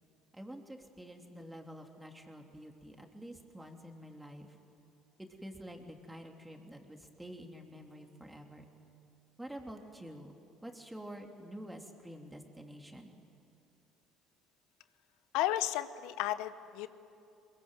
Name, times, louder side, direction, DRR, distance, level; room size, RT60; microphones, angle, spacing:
voice 1, 0.3-4.5 5.2-8.7 9.4-10.3 10.6-13.1, equal, 10° right, 3 dB, 3.1 m, -48 dB
voice 2, 15.3-16.9, left 14 dB, 75° left, 14 dB, 0.9 m, -33 dB
22.5 x 21.5 x 9.1 m, 2.7 s
hypercardioid pair, 70°, 0 cm